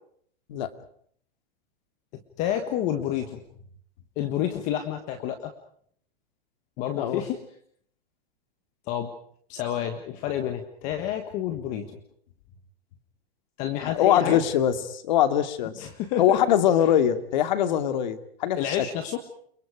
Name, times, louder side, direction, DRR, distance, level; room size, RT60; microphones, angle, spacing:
voice 1, 2.4-3.4 4.2-5.5 6.8-7.4 8.9-9.1 9.5-12.0 13.6-14.4 15.8-16.4 18.6-19.2, left 10 dB, 25° left, 7 dB, 1.5 m, -29 dB
voice 2, 13.8-15.9 16.2-18.8, left 10 dB, 45° left, 10 dB, 2.4 m, -23 dB
29.0 x 23.5 x 5.1 m, 0.63 s
supercardioid pair, 180°, 30 cm